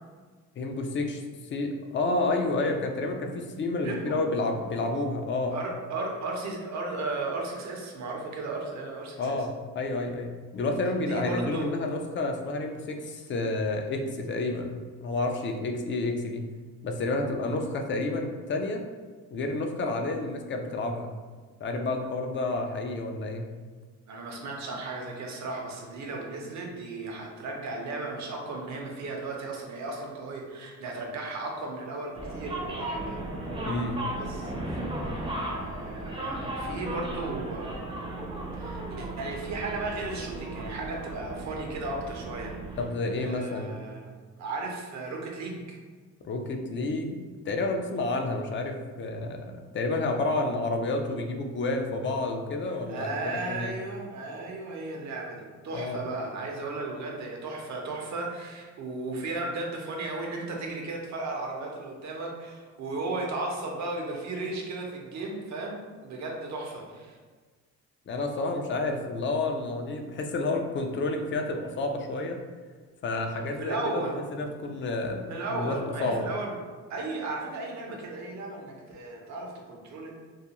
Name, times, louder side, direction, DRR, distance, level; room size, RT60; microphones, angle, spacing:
voice 1, 0.6-1.2 1.5-5.6 9.2-9.5 9.7-14.8 15.0-16.4 16.8-18.8 19.3-21.1 21.6-23.5 33.7-34.0 42.8-43.8 46.2-53.7 55.7-56.0 68.1-72.4 73.0-76.3, left 2 dB, 40° left, 4 dB, 0.4 m, -30 dB
voice 2, 3.8-4.3 5.5-9.5 10.9-11.7 24.1-33.3 34.1-37.8 38.5-42.6 43.2-44.1 44.4-45.8 52.9-67.2 73.6-74.2 75.3-76.5 76.9-80.1, right 2 dB, 65° right, 0 dB, 0.7 m, -35 dB
sound 1, 32.2-42.9, right 1 dB, 20° right, 0.5 m, -35 dB
2.4 x 2.2 x 2.9 m, 1.5 s
cardioid pair, 90°, 30 cm